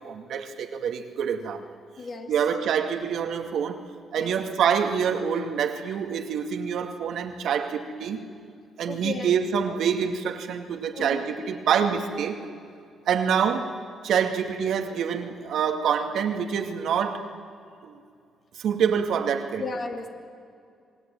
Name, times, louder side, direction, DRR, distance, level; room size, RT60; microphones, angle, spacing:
voice 1, 0.0-1.6 2.3-3.8 4.1-8.3 8.8-12.4 13.1-13.7 14.0-17.3 17.8-18.0 18.6-19.7, right 7 dB, 75° right, 5 dB, 2.3 m, -26 dB
voice 2, 2.0-2.3 4.1-4.3 8.9-9.3 10.9-11.2 19.6-20.1, left 4 dB, 45° left, 4 dB, 2.7 m, -34 dB
27.5 x 19.5 x 9.1 m, 2.3 s
cardioid pair, 90°, 0 cm